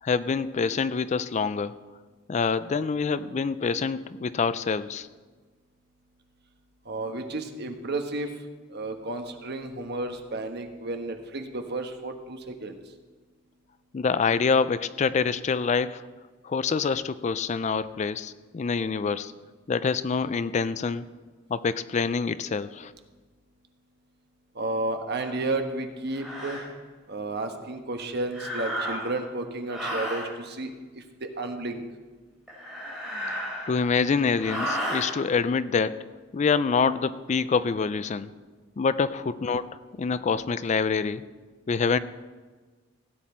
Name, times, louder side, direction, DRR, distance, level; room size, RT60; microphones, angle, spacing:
voice 1, 0.0-1.7 2.3-5.1 13.9-16.1 16.4-19.3 19.7-21.0 21.5-22.9 33.7-36.0 36.3-38.3 38.8-39.7 40.0-41.2 41.7-42.0, left 5 dB, 35° left, 15 dB, 0.4 m, -26 dB
voice 2, 6.9-8.3 8.7-12.8 24.6-26.6 27.1-30.7 31.2-31.8, right 2 dB, 55° right, 6 dB, 1.2 m, -32 dB
sound 1, 25.2-25.4 26.1-26.7 28.3-29.2 29.7-30.3 32.5-33.9 34.4-35.1, equal, 5° right, 4.2 m, -33 dB
16.5 x 9.2 x 4.4 m, 1.4 s
head